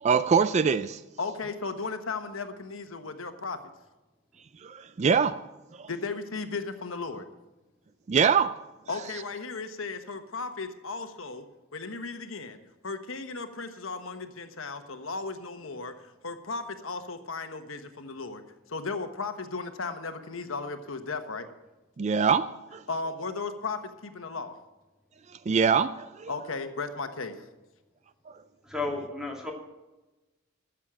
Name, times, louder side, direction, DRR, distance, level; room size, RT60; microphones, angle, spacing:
voice 1, 0.0-1.0 4.6-5.4 5.8-5.9 8.1-8.5 22.0-22.8 25.5-26.3, right 6 dB, 35° right, 13 dB, 0.3 m, -24 dB
voice 2, 1.2-3.6 5.9-7.2 8.9-11.4 11.7-12.6 12.8-15.9 16.2-18.4 18.7-21.5 22.9-24.5 26.3-27.4, left 4 dB, 85° left, 8 dB, 1.2 m, -35 dB
voice 3, 28.7-29.5, left 3 dB, 5° right, 0 dB, 2.4 m, -32 dB
13.5 x 7.5 x 7.5 m, 1.1 s
head